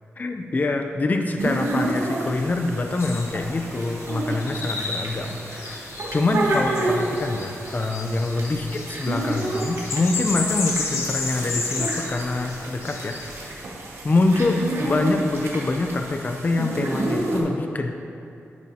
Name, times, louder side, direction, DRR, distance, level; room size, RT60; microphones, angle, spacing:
voice 1, 0.2-5.9 6.1-13.2 13.5-13.6 14.0-17.9, left 2 dB, 35° left, 4 dB, 0.6 m, -25 dB
sound 1, 1.4-17.4, right 1 dB, 70° right, 1.4 m, -30 dB
sound 2, 3.0-13.5, left 3 dB, 70° left, 1.1 m, -33 dB
9.5 x 9.4 x 2.9 m, 2.7 s
wide cardioid pair, 100°, 5 cm